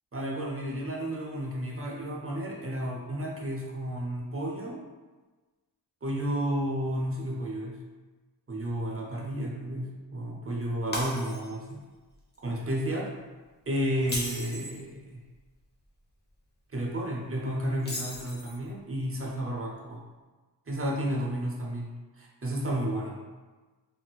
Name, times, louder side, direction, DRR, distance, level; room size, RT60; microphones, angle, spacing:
voice 1, 0.1-4.8 6.0-7.8 8.5-11.8 12.4-13.1 13.7-15.2 16.7-20.0 20.7-21.9 22.2-23.2, right 1 dB, 30° right, -2 dB, 0.7 m, -32 dB
Shatter, 10.9-11.7 12.1-12.4 14.0-14.8 17.8-18.7, left 1 dB, 25° left, 0.9 m, -36 dB
3.7 x 2.5 x 2.3 m, 1.3 s
cardioid pair, 50°, 44 cm